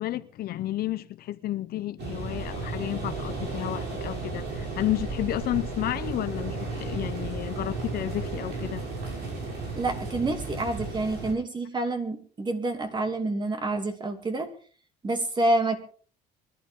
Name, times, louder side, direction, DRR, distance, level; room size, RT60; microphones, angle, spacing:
voice 1, 0.0-8.8, left 14 dB, 65° left, 0.8 m, -31 dB
sound 1, 2.0-11.3, right 3 dB, 85° right, 7.3 m, -34 dB
voice 2, 9.7-14.5 15.0-15.8, right 2 dB, 25° right, 2.8 m, -28 dB
23.0 x 12.0 x 3.7 m
cardioid pair, 110°, 17 cm